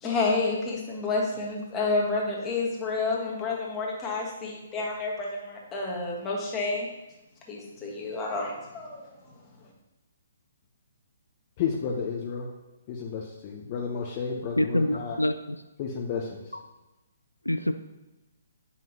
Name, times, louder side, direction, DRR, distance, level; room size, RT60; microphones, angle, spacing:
voice 1, 0.0-6.9 7.5-9.3, left 3 dB, 15° left, -3 dB, 1.5 m, -29 dB
voice 2, 11.6-12.5 12.9-15.2 15.8-16.4, left 6 dB, 35° left, -1 dB, 0.7 m, -32 dB
voice 3, 14.6-15.6 17.5-17.7, left 1 dB, 90° left, 9 dB, 0.3 m, -26 dB
9.0 x 5.7 x 2.9 m, 1.1 s
figure-of-eight pair, 130°, 0 cm